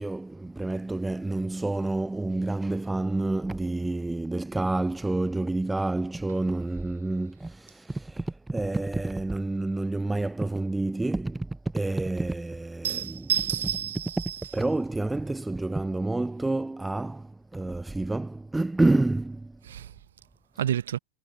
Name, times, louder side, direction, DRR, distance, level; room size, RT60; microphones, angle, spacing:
voice 1, 0.0-13.3 14.2-14.3 14.5-19.6, right 2 dB, 10° right, 0.4 m, -28 dB
voice 2, 12.8-14.4 19.7-19.9 20.6-21.0, right 10 dB, 70° right, 0.6 m, -29 dB
figure-of-eight pair, 90°, 0 cm